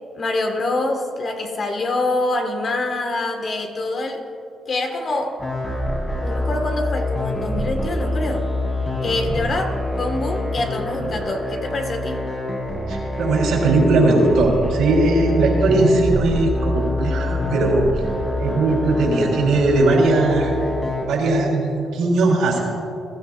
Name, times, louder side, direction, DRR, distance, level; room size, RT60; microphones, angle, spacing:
voice 1, 0.1-4.2 4.7-5.4 6.2-8.5 9.0-12.2, left 2 dB, 45° left, 4 dB, 1.7 m, -25 dB
sound 1, 5.4-21.0, left 1 dB, 20° left, 3.2 m, -25 dB
voice 2, 12.9-18.1 18.4-20.5 21.1-22.6, right 2 dB, 80° right, -2 dB, 3.6 m, -19 dB
21.0 x 13.0 x 2.5 m, 2.7 s
cardioid pair, 90°, 0 cm